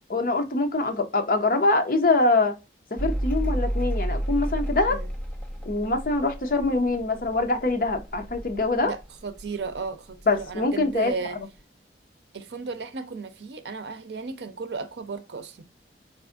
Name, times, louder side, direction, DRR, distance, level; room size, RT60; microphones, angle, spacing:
voice 1, 0.1-2.5 2.9-5.0 5.7-8.9 10.3-11.1, left 2 dB, 55° left, 0.7 m, -24 dB
Mechanical fan, 3.0-9.8 10.1-10.9, equal, 10° left, 0.6 m, -31 dB
voice 2, 8.8-11.4 12.3-15.6, right 4 dB, 75° right, 0.5 m, -34 dB
4.0 x 2.5 x 2.3 m
head